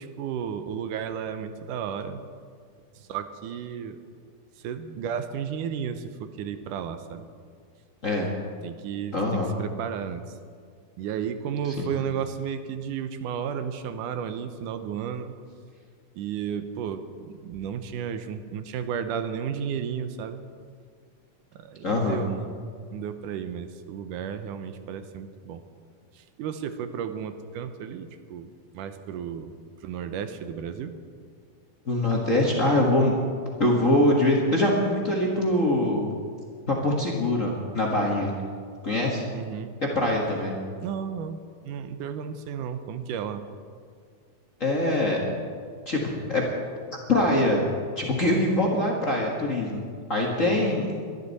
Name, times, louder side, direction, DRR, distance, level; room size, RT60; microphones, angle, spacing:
voice 1, 0.0-2.2 3.0-4.0 4.6-7.3 8.6-10.3 11.0-15.3 16.2-20.4 21.5-22.5 22.8-25.6 26.1-29.6 29.8-31.0 39.3-39.7 40.8-43.4 50.4-50.8, right 8 dB, 85° right, 9 dB, 2.4 m, -33 dB
voice 2, 9.1-9.5 11.8-11.9 21.8-22.2 31.8-33.1 33.6-36.1 36.7-38.3 38.8-39.2 39.8-40.6 44.6-45.2 45.8-46.4 47.1-47.6 48.0-49.8 50.1-50.9, left 1 dB, 35° left, -2 dB, 1.3 m, -23 dB
23.0 x 11.5 x 4.2 m, 2.1 s
omnidirectional pair, 3.6 m